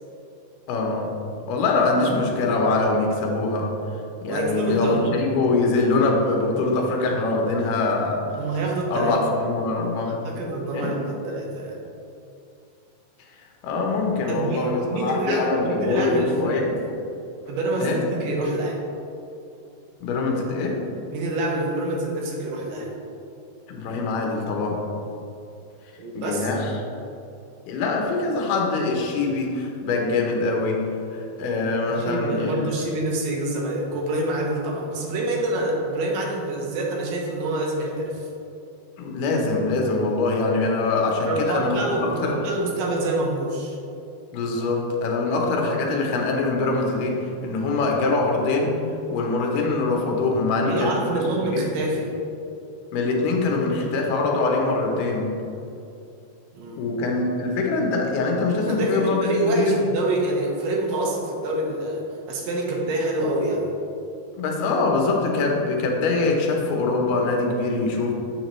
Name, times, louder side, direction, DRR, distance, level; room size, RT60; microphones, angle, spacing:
voice 1, 0.7-1.1 1.5-3.7 4.2-8.2 8.9-10.2 10.7-10.9 13.6-16.8 17.8-18.0 20.0-20.8 23.7-24.8 26.2-26.7 27.7-32.7 39.0-42.4 44.3-48.8 49.1-51.2 51.5-51.6 52.9-55.3 56.8-59.8 64.4-68.1, left 3 dB, 70° left, 0 dB, 2.3 m, -23 dB
voice 2, 4.3-5.1 8.4-9.1 10.2-11.8 14.3-16.6 17.5-18.8 21.1-22.9 26.0-26.5 31.9-38.3 41.3-43.8 44.4-44.7 50.6-52.1 56.5-56.9 58.6-63.7, right 2 dB, 75° right, 0 dB, 2.4 m, -26 dB
7.8 x 5.9 x 3.1 m, 2.6 s
omnidirectional pair, 4.3 m